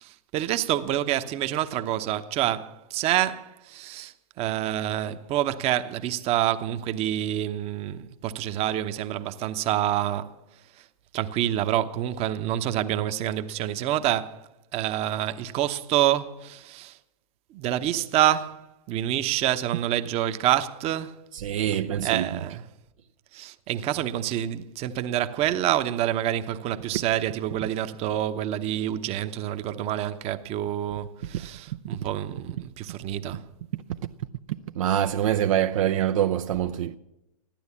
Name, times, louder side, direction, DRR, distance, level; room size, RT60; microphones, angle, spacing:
voice 1, 0.0-10.3 11.1-14.4 14.7-17.0 17.5-21.1 22.0-22.6 23.3-33.4, right 12 dB, 35° right, 0.9 m, -27 dB
voice 2, 21.3-22.4 26.9-27.0 31.3-31.5 31.9-32.0 33.7-33.8 34.5-37.0, right 11 dB, 60° right, 0.6 m, -25 dB
15.0 x 12.0 x 7.2 m
hypercardioid pair, 115°, 19 cm